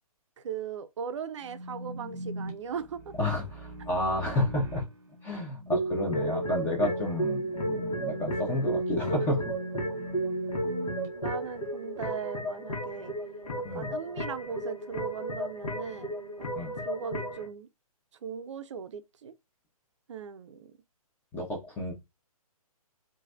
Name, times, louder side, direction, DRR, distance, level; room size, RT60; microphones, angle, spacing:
voice 1, 0.4-3.1 10.6-13.1 13.7-16.1 16.4-16.5 16.8-17.7 18.2-19.3 20.1-20.7, right 7 dB, 50° right, 0.5 m, -38 dB
sound 1, 1.4-11.1, equal, 10° right, 1.3 m, -41 dB
voice 2, 3.2-4.8 5.2-9.5 13.6-13.9 16.5-16.7 21.3-21.9, left 1 dB, 10° left, 0.7 m, -30 dB
sound 2, 5.7-17.5, right 1 dB, 75° left, 1.3 m, -33 dB
3.0 x 2.6 x 2.4 m
figure-of-eight pair, 130°, 19 cm